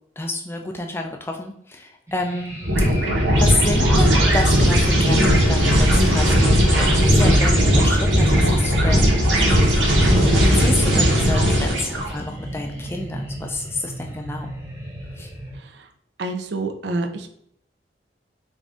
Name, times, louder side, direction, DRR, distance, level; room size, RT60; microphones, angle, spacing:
voice 1, 0.2-2.5 2.8-3.0 3.4-9.2 9.9-14.5 15.1-15.3, left 2 dB, 15° left, 3 dB, 0.3 m, -29 dB
sound 1, 2.1-15.6, right 1 dB, 15° right, 0.8 m, -34 dB
sound 2, 2.6-12.1, equal, 90° right, 1.0 m, -17 dB
voice 2, 15.6-15.9 16.2-17.3, right 2 dB, 65° right, 6 dB, 0.4 m, -28 dB
3.6 x 2.5 x 3.4 m, 0.69 s
head